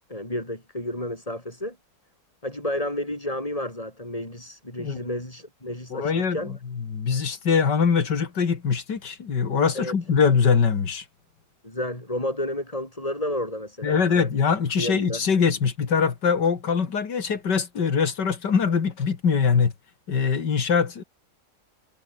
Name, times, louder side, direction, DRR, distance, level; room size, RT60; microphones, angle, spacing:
voice 1, 0.1-1.8 2.4-6.5 9.7-9.9 11.6-14.3 14.7-15.2, left 1 dB, 20° left, 6.3 m, -31 dB
voice 2, 5.9-11.0 13.8-19.7 20.1-21.0, left 6 dB, 80° left, 2.8 m, -23 dB
omnidirectional pair, 1.8 m